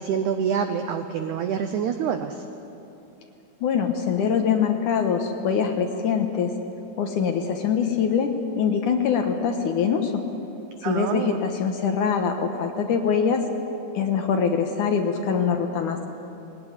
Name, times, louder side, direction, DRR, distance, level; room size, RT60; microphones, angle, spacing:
voice 1, 0.0-2.4 10.8-11.4, right 7 dB, 85° right, 7 dB, 1.7 m, -26 dB
voice 2, 3.6-6.5 7.0-10.2 10.8-13.4 13.9-16.1, left 6 dB, 65° left, 5 dB, 2.2 m, -23 dB
21.0 x 18.5 x 9.9 m, 3.0 s
omnidirectional pair, 4.7 m